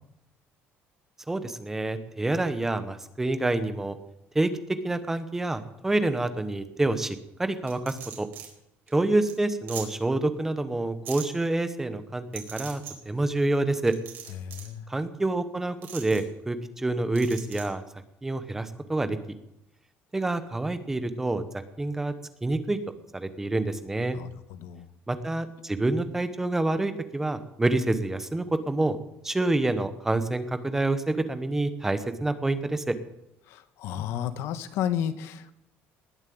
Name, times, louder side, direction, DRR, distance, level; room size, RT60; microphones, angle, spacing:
voice 1, 1.3-4.0 4.3-4.5 4.8-8.3 8.9-13.9 14.9-17.8 18.2-19.2 20.1-21.4 21.8-22.1 22.4-22.8 23.1-24.2 25.1-29.0 29.2-33.0, right 2 dB, 10° right, 10 dB, 1.0 m, -27 dB
sound 1, 7.7-8.5 8.9-9.0 9.3-9.4 9.7-9.8 11.0-11.2 12.3-12.9 13.9-14.7 15.8-16.2 17.1-17.6, right 9 dB, 50° right, 4.5 m, -40 dB
voice 2, 14.4-14.8 24.1-24.9 33.5-35.5, left 10 dB, 65° left, 12 dB, 1.2 m, -32 dB
20.0 x 7.4 x 9.3 m, 0.84 s
cardioid pair, 180°, 5 cm